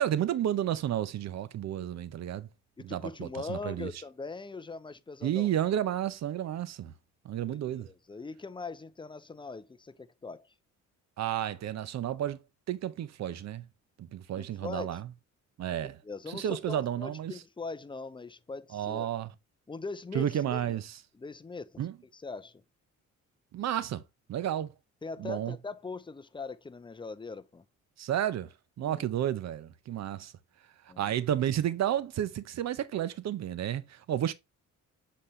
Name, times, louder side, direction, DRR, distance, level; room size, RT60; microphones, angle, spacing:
voice 1, 0.0-2.5 2.8-3.9 5.2-6.9 7.2-7.9 11.2-12.4 12.7-13.6 14.0-15.1 15.6-16.0 16.3-17.3 18.7-19.3 20.1-21.0 21.8-21.9 23.5-24.0 24.3-24.7 25.2-25.6 28.0-28.5 28.8-30.3 31.0-34.3, right 11 dB, 60° right, 0.7 m, -31 dB
voice 2, 2.8-5.5 7.5-10.5 14.4-15.0 15.8-19.1 19.7-20.8 21.1-21.8 22.1-22.6 25.0-27.6 28.8-29.1 30.9-31.1, left 4 dB, 15° left, 0.5 m, -41 dB
7.4 x 4.2 x 3.2 m
cardioid pair, 90°, 30 cm